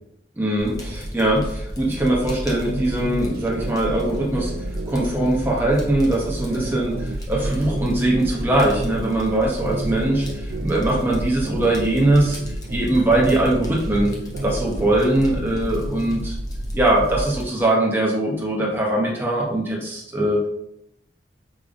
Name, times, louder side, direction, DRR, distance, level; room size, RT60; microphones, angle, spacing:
voice 1, 0.4-12.4 12.7-14.1 14.4-16.4 16.7-20.5, right 1 dB, 10° right, -3 dB, 0.9 m, -21 dB
Fire, 0.6-17.4, equal, 20° left, 0.6 m, -31 dB
sound 1, 2.6-9.1 9.5-12.8 13.1-16.2, right 2 dB, 55° right, 0.4 m, -33 dB
4.9 x 2.8 x 2.5 m, 0.79 s
head